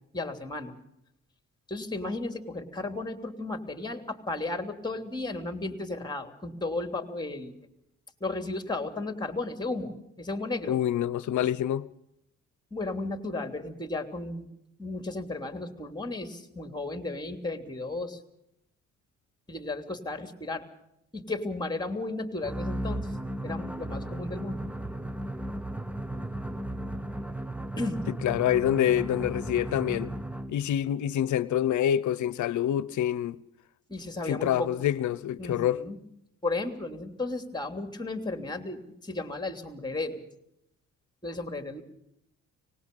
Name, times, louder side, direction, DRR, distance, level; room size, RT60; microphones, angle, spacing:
voice 1, 0.1-0.7 1.7-7.5 8.2-10.8 12.7-14.5 14.8-18.2 19.5-20.6 21.1-23.2 23.4-24.6 27.7-28.0 33.9-34.7 35.4-36.0 36.4-40.2 41.2-41.8, left 2 dB, 15° left, 3.1 m, -34 dB
voice 2, 10.7-11.9 28.2-30.1 30.5-33.4 34.3-35.8, left 11 dB, 70° left, 0.9 m, -26 dB
sound 1, 22.4-30.7, right 1 dB, 5° right, 0.8 m, -35 dB
24.5 x 20.0 x 5.5 m
cardioid pair, 90°, 30 cm